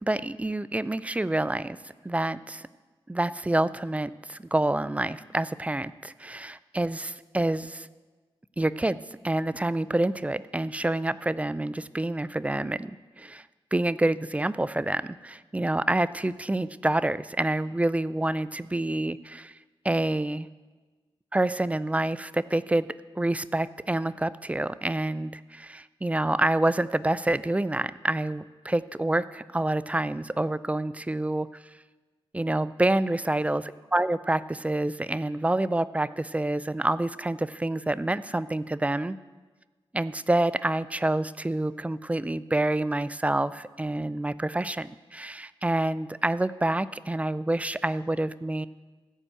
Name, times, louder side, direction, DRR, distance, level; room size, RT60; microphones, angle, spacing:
voice 1, 0.0-1.8 2.0-2.7 3.1-7.9 8.6-9.0 9.2-12.9 13.2-13.4 13.7-19.5 19.8-20.5 21.3-22.9 23.2-31.5 32.3-39.2 39.9-48.7, right 1 dB, 15° right, 16 dB, 0.4 m, -27 dB
14.5 x 5.4 x 8.4 m, 1.3 s
wide cardioid pair, 90°, 10 cm